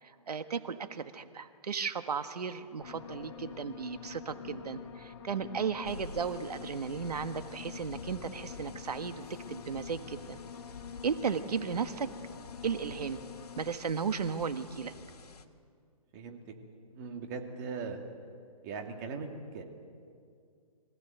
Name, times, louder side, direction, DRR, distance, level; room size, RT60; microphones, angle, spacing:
voice 1, 0.3-10.4 11.0-12.1 12.6-13.2 13.6-14.9, right 6 dB, 85° right, 9 dB, 1.5 m, -35 dB
sound 1, 2.8-13.7, left 7 dB, 45° left, 1.6 m, -46 dB
sound 2, 5.8-15.4, left 5 dB, 80° left, 1.9 m, -50 dB
voice 2, 16.9-18.0 18.6-19.6, right 5 dB, 30° right, 3 dB, 2.4 m, -39 dB
25.0 x 16.5 x 9.2 m, 2.3 s
hypercardioid pair, 160°, 20 cm